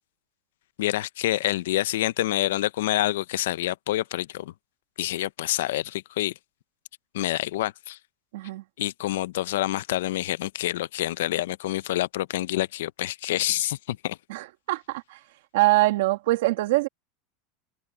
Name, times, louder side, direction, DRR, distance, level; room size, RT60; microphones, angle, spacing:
voice 1, 0.8-4.5 5.0-6.3 7.1-8.0 8.8-14.2, left 15 dB, 90° left, 0.6 m, -27 dB
voice 2, 8.3-8.6 14.3-15.2 15.5-16.9, right 19 dB, 75° right, 2.1 m, -23 dB
open air
supercardioid pair, 160°, 0 cm